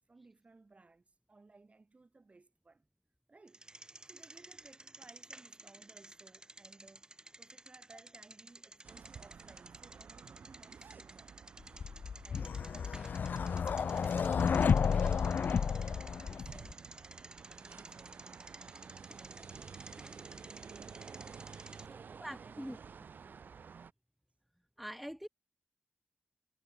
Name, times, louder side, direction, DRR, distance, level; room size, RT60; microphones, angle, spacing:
voice 1, 0.1-2.9 3.3-3.7 4.1-7.1 7.4-11.4 12.2-20.4 21.8-22.8 23.2-23.6, right 3 dB, 45° right, 7.2 m, -61 dB
Bicycle, 3.5-21.9, right 2 dB, 25° right, 7.7 m, -54 dB
sound 1, 8.8-23.9, right 6 dB, 80° right, 4.1 m, -52 dB
sound 2, 11.8-16.7, left 6 dB, 75° left, 0.4 m, -31 dB
voice 2, 22.2-22.8 24.8-25.3, equal, ahead, 0.9 m, -43 dB
cardioid pair, 55°, 3 cm